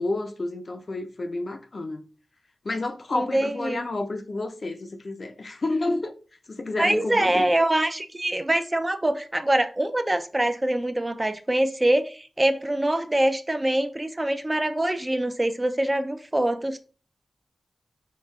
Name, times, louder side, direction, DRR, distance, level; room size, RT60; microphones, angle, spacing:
voice 1, 0.0-2.0 2.6-6.1 6.5-7.5, left 2 dB, 55° left, 0.5 m, -30 dB
voice 2, 3.1-3.8 6.8-16.8, right 1 dB, 20° right, 0.3 m, -24 dB
4.7 x 2.4 x 2.3 m
cardioid pair, 55°, 0 cm